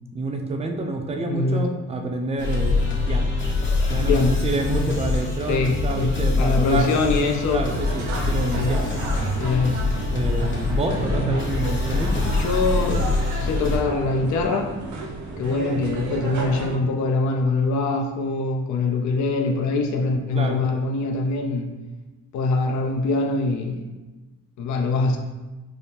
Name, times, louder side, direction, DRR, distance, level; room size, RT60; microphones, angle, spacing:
voice 1, 0.1-3.3 3.9-7.0 7.5-8.9 10.1-12.3 20.3-20.6, right 2 dB, 20° right, 3 dB, 0.5 m, -28 dB
voice 2, 1.3-1.7 4.1-4.3 4.7-4.9 5.5-7.6 8.5-8.7 9.4-9.8 11.1-11.4 12.2-14.8 15.4-21.7 22.3-23.9 24.6-25.2, left 3 dB, 60° left, 3 dB, 0.5 m, -23 dB
sound 1, 2.4-13.8, left 3 dB, 35° left, 0.8 m, -24 dB
sound 2, 7.0-16.8, right 3 dB, 60° right, 0.6 m, -32 dB
4.9 x 2.0 x 2.8 m, 1.2 s
cardioid pair, 90°, 33 cm